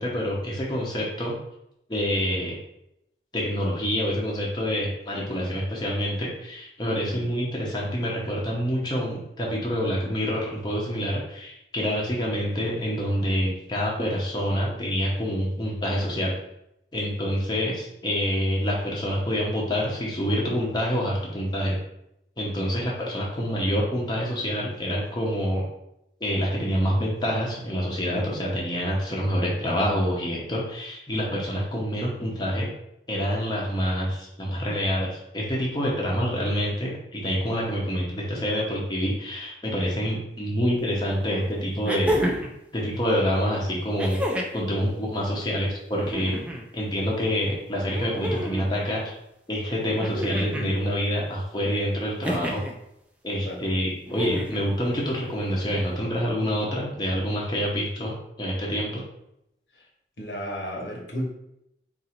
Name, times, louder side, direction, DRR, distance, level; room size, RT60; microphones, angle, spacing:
voice 1, 0.0-1.4 1.9-2.6 3.3-16.3 16.9-21.8 22.4-25.6 26.2-32.7 33.1-42.1 42.7-44.2 44.5-46.4 46.7-49.0 49.5-52.6 53.2-59.0, equal, 25° left, -4 dB, 0.9 m, -27 dB
sound 1, 40.8-40.9 41.8-42.6 44.0-44.6 45.9-46.6 47.9-48.7 50.0-50.7 52.2-52.7 54.1-54.7 56.0-56.1, equal, 5° right, 0.4 m, -29 dB
voice 2, 60.2-61.2, equal, 80° left, -1 dB, 1.2 m, -33 dB
3.8 x 2.7 x 4.3 m, 0.81 s
head